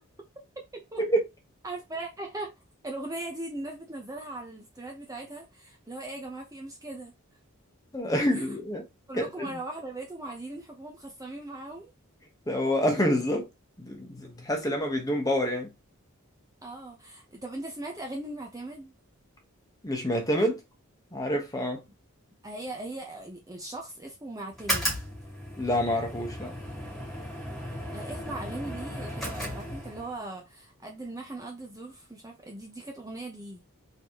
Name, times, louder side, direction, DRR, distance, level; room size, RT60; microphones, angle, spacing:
voice 1, 0.7-1.0 1.6-2.5 2.8-7.1 8.3-8.4 9.1-11.9 16.6-18.9 22.4-25.0 27.9-33.6, right 2 dB, 15° right, 0.8 m, -39 dB
voice 2, 7.9-8.8 9.1-9.5 12.5-13.5 13.8-15.7 19.8-20.6 21.1-21.8 25.6-26.5, equal, 15° left, 1.2 m, -27 dB
sound 1, 24.5-30.2, equal, ahead, 2.1 m, -35 dB
4.0 x 4.0 x 3.0 m
head